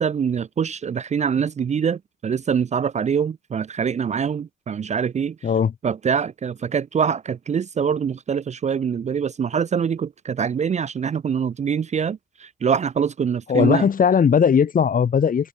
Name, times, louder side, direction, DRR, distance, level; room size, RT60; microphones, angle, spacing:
voice 1, 0.0-5.4 5.8-13.9, right 7 dB, 35° right, 0.6 m, -24 dB
voice 2, 5.4-5.7 13.5-15.5, left 7 dB, 45° left, 1.8 m, -18 dB
cardioid pair, 90°, 20 cm